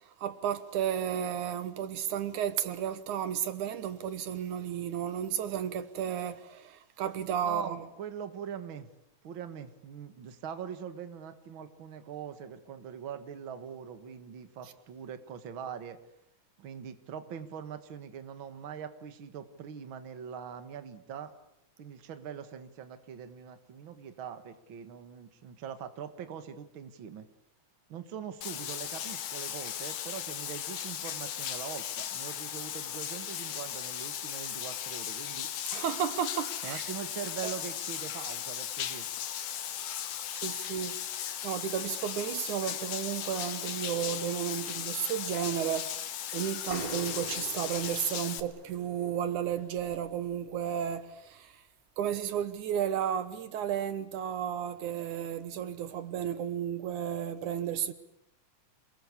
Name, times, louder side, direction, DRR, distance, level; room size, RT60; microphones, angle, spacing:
voice 1, 0.0-7.9 35.7-36.8 37.4-37.5 40.3-41.0 41.4-51.6 52.0-57.9, right 9 dB, 75° right, 2.5 m, -33 dB
voice 2, 7.4-8.9 9.2-16.0 16.6-21.3 21.8-27.3 27.9-35.5 36.6-39.1, right 8 dB, 45° right, 2.1 m, -42 dB
Bathtub (filling or washing), 28.4-48.4, left 10 dB, 75° left, 2.8 m, -37 dB
sound 1, 46.7-50.3, right 2 dB, 10° right, 3.7 m, -43 dB
28.0 x 21.5 x 8.5 m
omnidirectional pair, 3.6 m